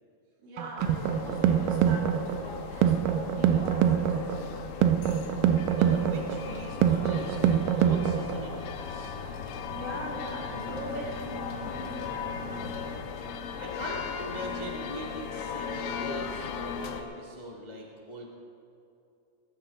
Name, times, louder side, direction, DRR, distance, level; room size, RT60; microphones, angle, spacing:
voice 1, 0.4-4.4 9.7-12.8, right 1 dB, 70° right, -4 dB, 4.6 m, -41 dB
sound 1, 0.6-8.6, right 9 dB, 90° right, 2.6 m, -25 dB
sound 2, 0.8-17.0, left 6 dB, 75° left, 2.5 m, -38 dB
voice 2, 5.7-9.2 13.6-18.3, equal, 60° left, -3 dB, 0.4 m, -41 dB
sound 3, 6.5-13.0, left 1 dB, 35° left, 2.4 m, -44 dB
19.5 x 14.5 x 3.9 m, 2.7 s
omnidirectional pair, 4.1 m